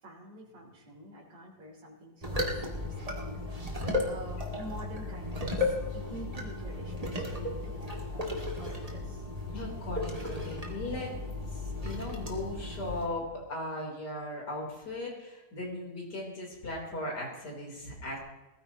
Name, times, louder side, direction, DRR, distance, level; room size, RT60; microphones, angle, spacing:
voice 1, 0.0-9.3, right 1 dB, 75° right, -3 dB, 3.8 m, -47 dB
sound 1, 2.2-13.1, left 2 dB, 20° right, 2.1 m, -35 dB
voice 2, 9.5-18.2, left 1 dB, 65° left, -2 dB, 4.4 m, -38 dB
21.0 x 14.5 x 3.0 m, 1.1 s
omnidirectional pair, 1.9 m